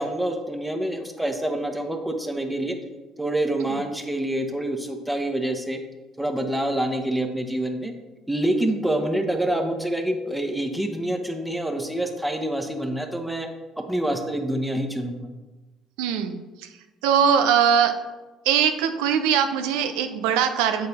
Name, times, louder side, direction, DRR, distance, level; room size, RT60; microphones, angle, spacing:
voice 1, 0.0-2.8 3.2-5.8 6.2-7.9 8.3-13.5 13.8-15.2, right 1 dB, 5° right, 4 dB, 1.1 m, -26 dB
voice 2, 16.0-16.4 17.0-17.9 18.5-20.9, right 8 dB, 80° right, 8 dB, 0.6 m, -21 dB
7.7 x 4.2 x 4.1 m, 1.2 s
hypercardioid pair, 65°, 0 cm